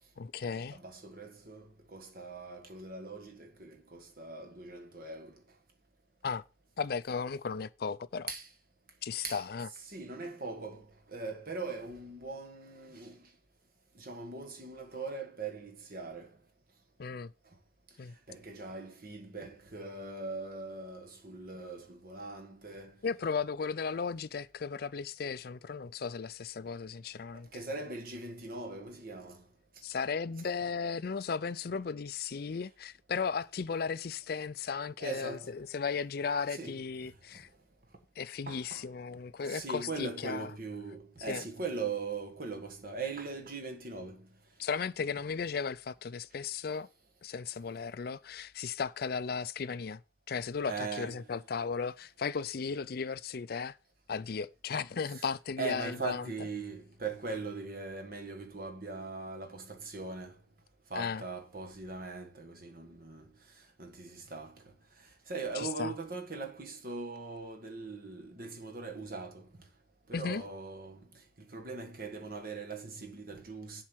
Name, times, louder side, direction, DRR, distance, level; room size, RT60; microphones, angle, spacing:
voice 1, 0.2-0.8 6.2-6.4 6.8-8.3 9.0-9.7 17.0-17.3 18.0-18.1 23.0-27.5 29.8-37.5 38.2-40.5 41.3-41.4 44.6-46.9 47.2-50.0 50.3-53.8 54.1-56.2 60.9-61.2 65.5-65.9 70.1-70.4, left 5 dB, 50° left, 0.4 m, -35 dB
voice 2, 0.7-5.4 8.3-8.5 9.2-9.4 9.8-13.3 13.9-16.4 18.3-23.0 27.3-29.4 35.0-35.5 36.5-36.8 37.3-37.4 38.5-38.9 39.4-44.3 50.7-51.3 55.0-55.2 55.6-60.4 60.9-63.3 63.8-64.6 65.0-69.5 70.1-73.8, right 3 dB, 50° right, 1.6 m, -41 dB
7.4 x 4.6 x 6.3 m
head